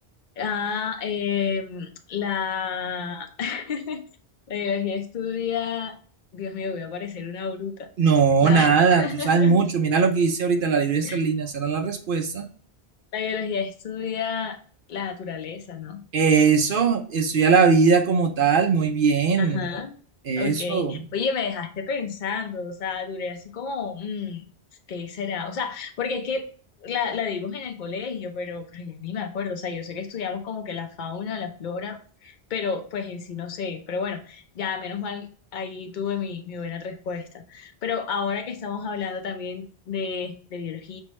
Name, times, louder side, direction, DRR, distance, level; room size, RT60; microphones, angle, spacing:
voice 1, 0.4-4.0 4.5-5.9 6.3-7.9 8.4-8.7 9.0-9.6 11.0-11.2 13.1-14.6 14.9-16.0 19.4-20.0 20.4-24.5 24.9-26.4 26.8-35.3 35.5-41.0, left 6 dB, 50° left, 6 dB, 0.7 m, -30 dB
voice 2, 8.0-12.5 16.1-19.7 20.3-21.0, right 5 dB, 55° right, 5 dB, 0.8 m, -20 dB
5.5 x 3.2 x 3.0 m, 0.43 s
omnidirectional pair, 1.1 m